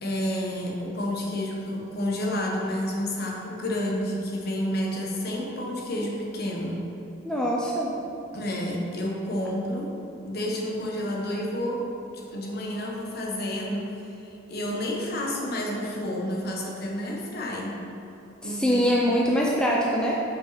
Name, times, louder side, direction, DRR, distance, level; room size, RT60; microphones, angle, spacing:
voice 1, 0.0-6.9 8.3-10.0 10.2-17.8 18.4-19.2, left 1 dB, 45° left, -1 dB, 1.0 m, -30 dB
voice 2, 7.2-7.9 18.4-20.2, equal, 5° left, -4 dB, 0.5 m, -23 dB
5.7 x 5.4 x 5.7 m, 2.9 s
head